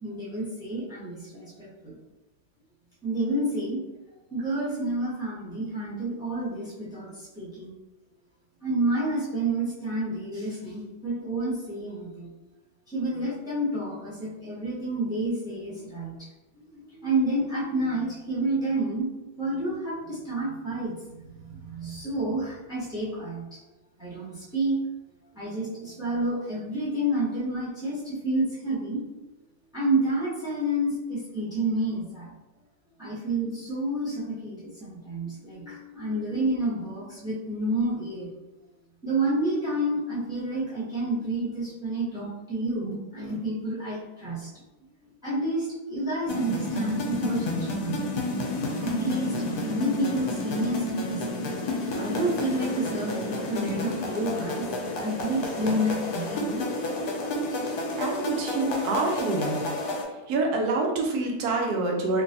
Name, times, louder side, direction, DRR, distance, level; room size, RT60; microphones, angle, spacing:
voice 1, 0.0-1.9 3.0-3.8 4.3-7.1 7.3-7.7 8.6-12.3 12.9-16.1 16.7-19.1 19.4-20.9 21.5-23.4 24.0-24.8 25.3-29.0 29.7-32.3 33.0-38.3 39.0-44.5 45.2-48.0 48.8-51.4 52.0-54.6 55.0-56.6 57.5-57.7, right 1 dB, 5° right, -7 dB, 0.7 m, -29 dB
sound 1, 46.3-60.0, left 1 dB, 80° left, 1.1 m, -30 dB
voice 2, 57.9-59.7 60.3-62.2, right 3 dB, 85° right, 1 dB, 1.2 m, -26 dB
3.3 x 2.5 x 2.7 m, 1.0 s
omnidirectional pair, 1.6 m